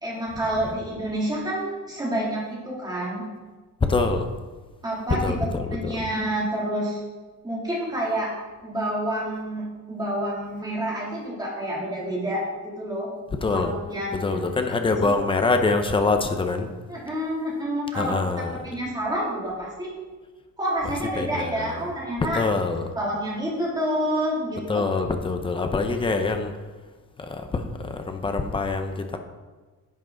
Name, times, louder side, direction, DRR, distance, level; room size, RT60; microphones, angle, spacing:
voice 1, 0.0-3.2 4.8-5.4 5.7-7.0 7.4-8.3 8.6-12.4 12.8-13.1 13.5-14.4 15.0-15.2 16.9-18.2 18.6-19.9 20.6-22.4 23.0-24.8, right 1 dB, 10° right, -5 dB, 2.5 m, -28 dB
voice 2, 3.8-4.3 5.2-6.0 13.4-13.8 14.1-16.7 18.0-18.6 21.2-21.8 22.2-22.9 24.7-26.5 27.2-29.2, left 3 dB, 15° left, 6 dB, 0.6 m, -25 dB
10.5 x 7.4 x 3.8 m, 1.3 s
cardioid pair, 175°, 36 cm